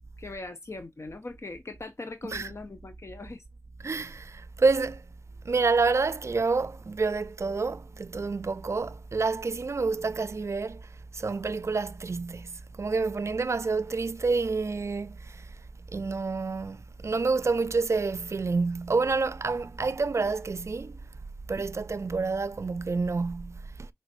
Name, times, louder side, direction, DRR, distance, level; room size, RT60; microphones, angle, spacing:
voice 1, 0.2-3.4, left 3 dB, 70° left, 0.7 m, -40 dB
voice 2, 3.8-5.1 5.4-15.5 15.9-21.0 21.5-23.9, right 4 dB, 80° right, 0.3 m, -28 dB
5.2 x 3.3 x 2.5 m
wide cardioid pair, 40°, 5 cm